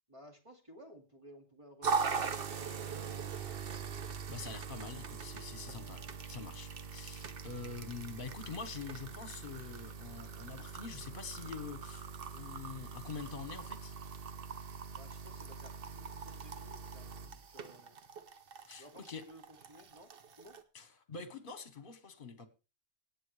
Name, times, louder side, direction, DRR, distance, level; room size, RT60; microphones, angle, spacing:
voice 1, 0.1-3.5 11.4-11.7 14.9-18.0 18.8-20.6, equal, 30° right, 2.3 m, -57 dB
sound 1, 1.8-20.6, right 5 dB, 55° right, 1.0 m, -42 dB
voice 2, 4.3-6.0 6.3-12.0 12.3-13.9 18.7-19.2 20.7-22.5, left 5 dB, 50° left, 1.3 m, -45 dB
17.5 x 8.3 x 3.2 m
omnidirectional pair, 1.1 m